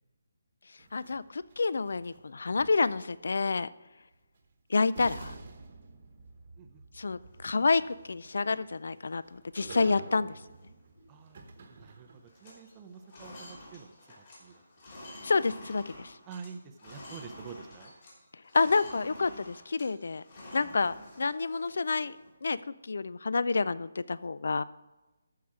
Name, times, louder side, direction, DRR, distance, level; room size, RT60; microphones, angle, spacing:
sound 1, 0.8-3.2 4.4-4.5 4.9-12.4, right 3 dB, 35° right, 1.0 m, -49 dB
voice 1, 0.9-3.7 4.7-5.3 7.0-10.4 15.2-16.1 18.5-20.2 20.5-22.2 22.4-24.6, left 4 dB, 65° left, 17 dB, 0.4 m, -29 dB
sound 2, 7.2-8.3 8.8-8.9 9.1-9.5 9.9-10.1 10.4-11.5 11.7-12.0 12.2-18.2 18.4-22.3, left 1 dB, 30° left, 3.2 m, -49 dB
voice 2, 11.1-11.4 11.8-14.6 16.3-17.9 20.6-20.7, right 6 dB, 15° right, 4 dB, 0.5 m, -48 dB
13.5 x 4.8 x 6.0 m, 1.1 s
hypercardioid pair, 175°, 0 cm